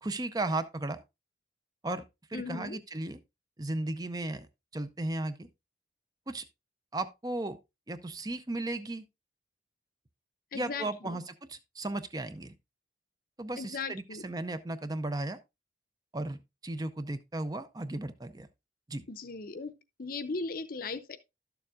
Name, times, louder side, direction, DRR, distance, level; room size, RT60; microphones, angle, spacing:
voice 1, 0.0-1.0 1.8-2.0 2.3-3.2 3.6-4.5 4.7-5.5 6.3-6.5 6.9-7.6 7.9-9.0 10.5-12.5 13.4-15.4 16.1-18.5 18.9-19.0, right 2 dB, 20° right, 0.5 m, -35 dB
voice 2, 2.3-2.8 10.5-11.2 13.6-14.2 19.1-19.7 20.0-21.2, left 4 dB, 50° left, 0.7 m, -37 dB
12.0 x 6.9 x 2.4 m
head